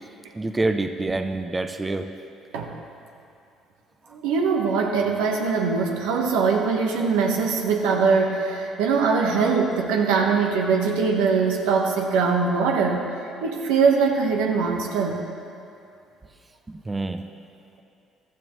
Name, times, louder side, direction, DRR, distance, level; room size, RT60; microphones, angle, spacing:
voice 1, 0.4-2.1 16.7-17.2, right 2 dB, 20° right, 7 dB, 0.6 m, -26 dB
voice 2, 4.1-13.1 13.4-15.2, right 5 dB, 85° right, 1 dB, 1.3 m, -22 dB
15.5 x 12.5 x 3.1 m, 2.5 s
supercardioid pair, 75°, 0 cm